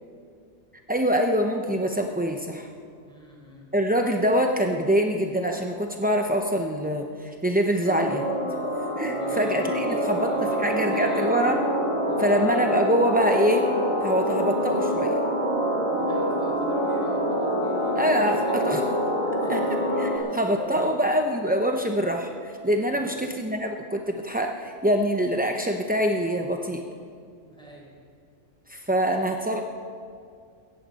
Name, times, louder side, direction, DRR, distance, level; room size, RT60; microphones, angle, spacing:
voice 1, 0.9-2.7 3.7-8.5 9.0-10.3 10.6-11.6 12.2-13.7 14.0-15.2 18.0-18.8 19.5-19.7 20.0-26.8 28.7-29.6, equal, 15° right, 3 dB, 0.3 m, -24 dB
voice 2, 3.0-3.7 9.0-10.6 10.9-11.4 12.1-12.3 16.0-18.5 19.4-19.9 20.2-21.0 22.9-23.1 27.4-27.9, right 1 dB, 5° left, -3 dB, 4.2 m, -39 dB
sound 1, 7.8-20.2, equal, 35° left, 2.1 m, -26 dB
17.5 x 14.5 x 4.1 m, 2.3 s
omnidirectional pair, 1.4 m